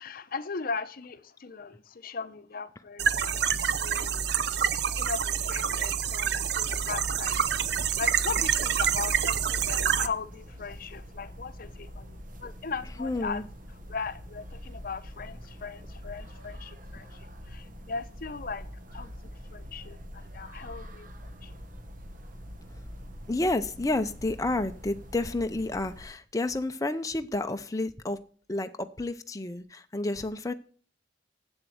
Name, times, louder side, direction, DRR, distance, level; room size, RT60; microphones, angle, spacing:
voice 1, 0.0-4.6 5.0-7.4 8.0-13.4 13.9-18.7 18.9-19.1 19.5-21.1 21.4-21.6, left 5 dB, 55° left, 0.8 m, -38 dB
sound 1, 3.0-10.1, right 7 dB, 65° right, 0.7 m, -27 dB
sound 2, 6.5-26.0, equal, 50° right, 1.4 m, -45 dB
voice 2, 12.8-13.5 23.3-28.2 28.5-30.5, left 2 dB, 20° left, 0.6 m, -30 dB
8.0 x 7.5 x 7.8 m
head